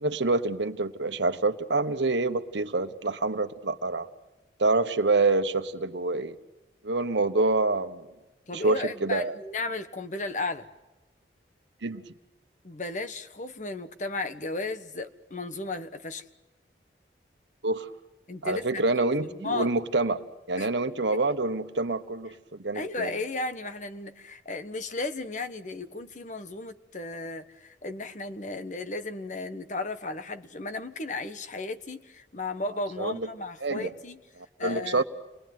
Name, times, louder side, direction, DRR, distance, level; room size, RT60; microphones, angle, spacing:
voice 1, 0.0-4.1 4.6-6.4 6.8-8.1 8.5-9.3 11.8-12.0 17.6-17.9 18.4-20.2 20.5-23.1 33.0-33.3 33.6-33.9 34.6-35.0, right 3 dB, 75° right, 9 dB, 1.3 m, -26 dB
voice 2, 8.5-10.7 12.6-16.2 18.3-19.7 20.6-20.7 22.7-34.2 34.6-35.0, left 2 dB, 40° left, 9 dB, 1.3 m, -34 dB
29.0 x 20.5 x 9.5 m, 1.1 s
head